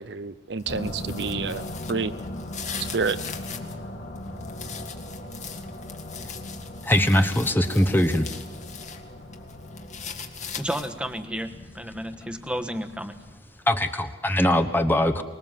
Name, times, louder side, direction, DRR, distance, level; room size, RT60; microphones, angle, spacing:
voice 1, 0.0-2.1 2.9-3.2, right 4 dB, 65° right, 13 dB, 0.7 m, -29 dB
sound 1, 0.6-3.7 4.2-9.0 9.3-11.1, left 7 dB, 40° left, 1.9 m, -40 dB
sound 2, 0.7-13.4, left 1 dB, 60° left, 3.5 m, -39 dB
voice 2, 6.8-8.3 13.7-15.2, left 1 dB, 10° left, 7 dB, 1.1 m, -21 dB
voice 3, 10.6-13.2, equal, 5° right, 8 dB, 1.3 m, -32 dB
24.5 x 21.0 x 7.5 m, 1.2 s
head